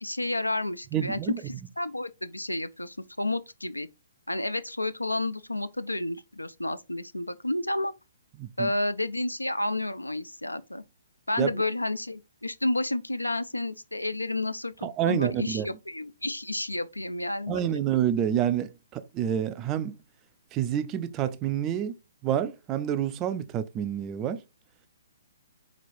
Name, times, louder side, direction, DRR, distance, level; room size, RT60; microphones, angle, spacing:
voice 1, 0.0-1.2 1.5-3.9 4.3-7.9 8.6-10.8 11.3-17.8, left 2 dB, 90° left, 0.3 m, -31 dB
voice 2, 0.9-1.4 8.4-8.7 11.4-11.5 14.8-15.7 17.5-20.0 20.5-22.0 22.2-24.4, right 10 dB, 25° right, 0.3 m, -28 dB
3.9 x 3.0 x 2.5 m
figure-of-eight pair, 130°, 0 cm